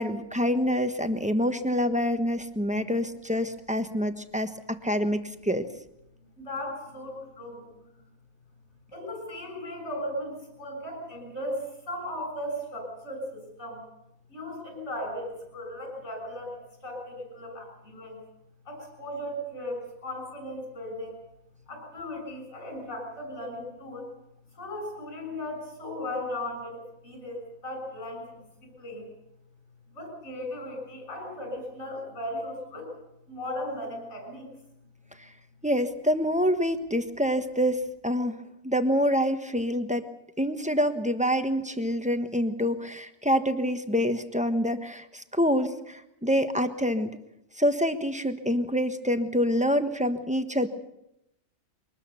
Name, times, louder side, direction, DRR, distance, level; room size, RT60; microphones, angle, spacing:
voice 1, 0.0-5.7 35.6-40.1 40.4-47.2 47.6-50.7, equal, 5° right, 8 dB, 1.1 m, -26 dB
voice 2, 6.4-7.6 8.9-13.8 14.3-16.6 16.8-18.2 18.7-21.2 21.7-24.0 24.6-28.4 28.8-29.1 29.9-32.9 33.3-34.5, left 1 dB, 55° left, 2 dB, 7.4 m, -37 dB
23.5 x 20.0 x 7.0 m, 0.84 s
omnidirectional pair, 1.5 m